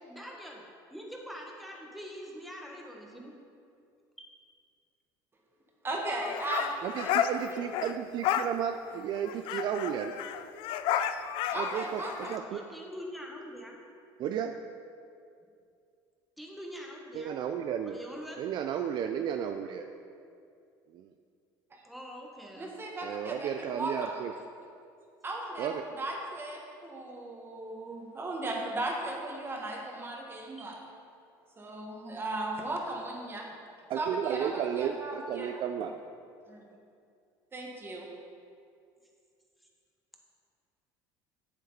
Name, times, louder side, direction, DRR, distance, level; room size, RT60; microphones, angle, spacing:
voice 1, 0.1-0.6 0.9-3.3 4.2-4.3 12.5-13.8 16.4-17.3 17.8-18.4 21.8-22.7 30.6-30.7, equal, ahead, -1 dB, 1.3 m, -44 dB
voice 2, 5.8-7.6 11.5-12.4 21.7-21.8 22.6-24.1 25.2-30.8 31.6-33.5 33.9-35.6 36.5-36.6 37.5-38.1, right 2 dB, 25° right, 0 dB, 1.6 m, -37 dB
sound 1, 6.2-7.9 8.2-8.5 8.9-9.0 9.2-12.4, left 10 dB, 65° left, 0.4 m, -32 dB
voice 3, 6.8-10.1 11.5-12.0 12.3-12.6 14.2-14.6 17.1-18.0 18.4-19.9 20.9-21.1 23.0-24.3 25.6-25.8 33.9-35.9, right 9 dB, 50° right, 6 dB, 0.4 m, -33 dB
8.1 x 7.9 x 4.0 m, 2.4 s
supercardioid pair, 110°, 10 cm